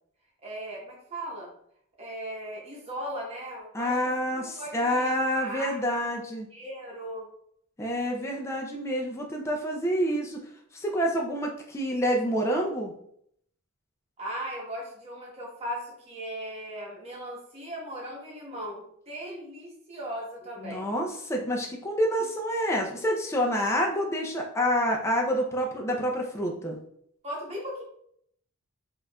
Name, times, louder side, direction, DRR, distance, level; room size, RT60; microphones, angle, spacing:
voice 1, 0.4-1.5 2.0-6.0 6.5-7.3 14.2-20.9 27.2-27.8, equal, 30° right, -3 dB, 0.9 m, -38 dB
voice 2, 3.7-6.5 7.8-10.4 10.7-12.9 20.6-26.8, equal, 10° left, 0 dB, 0.4 m, -28 dB
4.4 x 2.4 x 2.2 m, 0.68 s
head